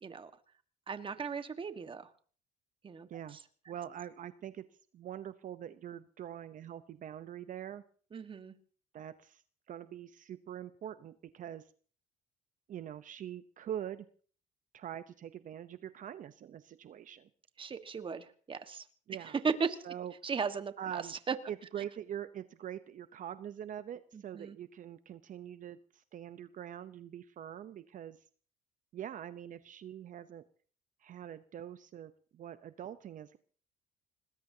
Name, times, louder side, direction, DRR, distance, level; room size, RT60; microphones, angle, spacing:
voice 1, 0.9-2.1 2.8-3.4 8.1-8.5 17.6-18.8 19.4-19.8 20.2-21.3 24.1-24.6, right 5 dB, 30° right, 10 dB, 1.5 m, -37 dB
voice 2, 3.7-4.6 4.9-7.8 8.9-9.4 9.7-11.6 12.7-14.1 14.7-17.3 19.1-19.3 19.8-20.1 20.8-21.1 21.5-28.2 28.9-30.4 31.0-33.4, right 10 dB, 50° right, 12 dB, 0.8 m, -44 dB
25.5 x 20.0 x 2.8 m, 0.43 s
cardioid pair, 110°, 17 cm